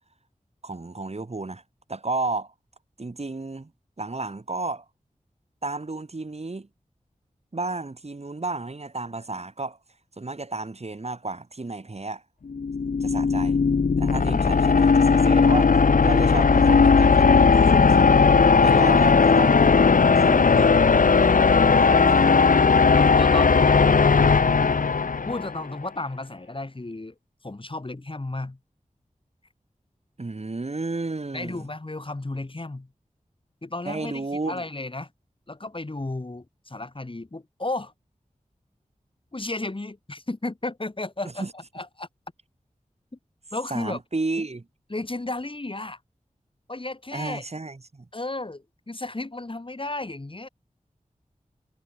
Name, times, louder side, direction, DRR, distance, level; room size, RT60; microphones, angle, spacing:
voice 1, 0.6-1.6 1.9-2.5 3.0-3.7 4.0-4.9 5.6-6.7 7.5-9.8 10.2-12.2 13.0-13.6 14.0-18.2 18.6-20.7 21.8-22.5 30.2-31.7 33.9-34.6 41.4-41.5 43.7-44.7 47.1-48.1, right 3 dB, 50° right, 5.1 m, -32 dB
sound 1, 12.5-25.6, left 5 dB, 85° left, 1.1 m, -17 dB
voice 2, 22.9-24.3 25.3-27.1 27.4-28.6 31.3-32.9 33.6-35.1 35.5-37.9 39.3-42.1 43.5-44.0 44.9-46.0 46.7-47.4 48.1-50.5, left 2 dB, 40° left, 7.3 m, -33 dB
wide cardioid pair, 70°, 14 cm